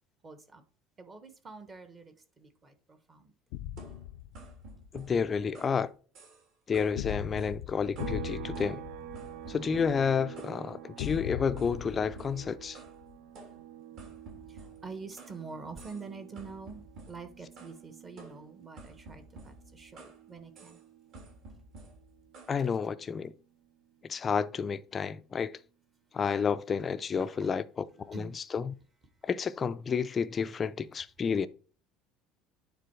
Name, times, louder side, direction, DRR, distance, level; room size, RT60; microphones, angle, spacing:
voice 1, 0.2-0.6 1.0-3.3 14.5-20.8 27.2-27.6 28.1-28.4, right 4 dB, 20° right, 1.1 m, -46 dB
sound 1, 3.5-4.9 7.0-9.9 11.0-13.1, left 14 dB, 80° left, 0.4 m, -40 dB
sound 2, 3.8-5.8 6.2-6.5 6.7-8.2 8.6-10.6 11.0-11.2 11.6-13.0 13.4-15.4 15.8-16.1 16.4-17.8 18.2-20.2 20.6-20.8 21.1-22.6, right 2 dB, 50° right, 3.2 m, -52 dB
voice 2, 4.9-5.9 6.7-8.8 9.5-12.8 22.5-23.3 24.0-25.5 26.1-27.6 28.1-28.7 29.2-31.5, left 6 dB, 25° left, 0.4 m, -30 dB
sound 3, 8.0-21.5 21.9-24.1, right 12 dB, 80° right, 0.8 m, -48 dB
9.4 x 4.0 x 4.5 m
cardioid pair, 160°, 0 cm